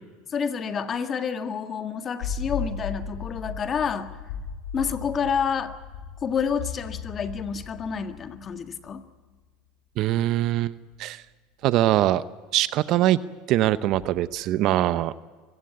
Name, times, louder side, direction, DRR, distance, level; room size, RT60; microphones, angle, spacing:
voice 1, 0.3-4.2 4.7-5.8 6.2-9.1, left 6 dB, 35° left, 8 dB, 1.7 m, -29 dB
sound 1, 2.2-9.0 10.9-11.0 13.9-14.2, left 6 dB, 70° left, 5.3 m, -36 dB
voice 2, 10.0-10.7 11.0-11.2 11.6-12.2 12.5-13.2 13.5-15.2, right 14 dB, 55° right, 15 dB, 0.8 m, -22 dB
24.5 x 15.5 x 9.6 m, 1.4 s
supercardioid pair, 100°, 0 cm